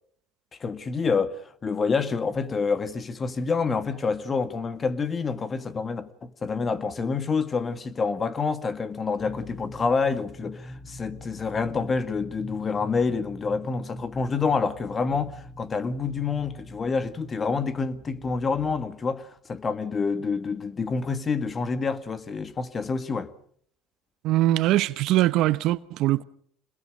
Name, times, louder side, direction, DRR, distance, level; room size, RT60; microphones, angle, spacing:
voice 1, 0.6-23.3, left 4 dB, 30° left, 1.9 m, -27 dB
sound 1, 9.2-18.8, equal, 10° left, 5.0 m, -43 dB
voice 2, 24.2-26.2, right 15 dB, 65° right, 1.0 m, -22 dB
27.0 x 21.0 x 5.2 m
supercardioid pair, 90°, 0 cm